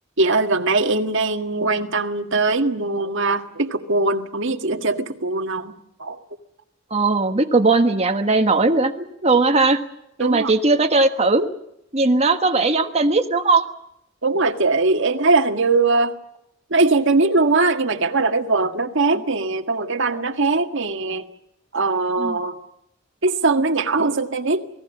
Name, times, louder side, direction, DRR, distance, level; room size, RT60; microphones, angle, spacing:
voice 1, 0.2-6.2 10.2-10.5 14.2-16.2 16.7-21.3 21.7-22.6 23.2-24.7, right 3 dB, 65° right, 5 dB, 1.8 m, -21 dB
voice 2, 6.9-9.8 10.2-11.5 11.9-13.6 22.2-22.3, right 3 dB, 30° right, 5 dB, 1.4 m, -18 dB
28.0 x 18.5 x 7.3 m, 0.81 s
head